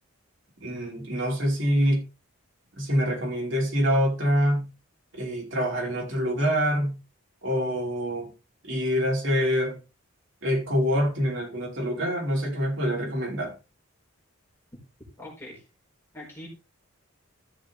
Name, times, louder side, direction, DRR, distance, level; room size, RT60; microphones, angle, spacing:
voice 1, 0.6-2.0 2.8-4.7 5.1-6.9 7.4-8.3 8.7-9.8 10.4-13.5, equal, 60° right, 5.1 m, -25 dB
voice 2, 15.2-15.6 16.1-16.5, left 1 dB, 10° left, 4.8 m, -42 dB
14.5 x 7.1 x 3.5 m
head